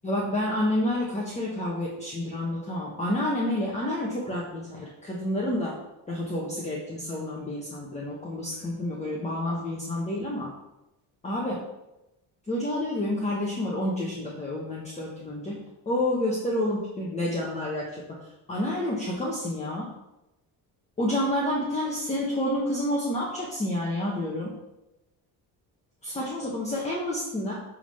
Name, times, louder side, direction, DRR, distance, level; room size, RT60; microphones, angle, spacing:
voice 1, 0.0-5.7 6.1-10.5 11.2-11.6 12.5-18.0 18.5-19.9 21.0-24.5 26.0-27.5, left 1 dB, 15° left, -4 dB, 1.2 m, -29 dB
8.2 x 3.8 x 5.6 m, 0.94 s
cardioid pair, 130°, 42 cm